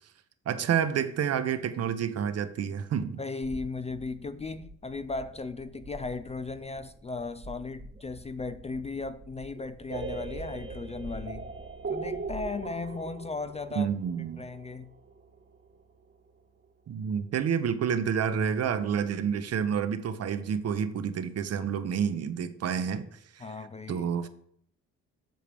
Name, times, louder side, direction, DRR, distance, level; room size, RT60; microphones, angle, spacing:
voice 1, 0.5-3.2 13.8-14.4 16.9-23.4 23.9-24.3, right 7 dB, 55° right, 11 dB, 0.8 m, -29 dB
voice 2, 3.2-11.5 11.9-13.9 14.4-14.9 23.4-24.1, left 3 dB, 20° left, 13 dB, 0.4 m, -36 dB
sound 1, 3.4-13.6, right 1 dB, 25° right, 0.8 m, -48 dB
sound 2, 9.9-15.7, right 4 dB, 40° right, 1.3 m, -39 dB
7.8 x 6.6 x 3.4 m, 0.65 s
cardioid pair, 90°, 30 cm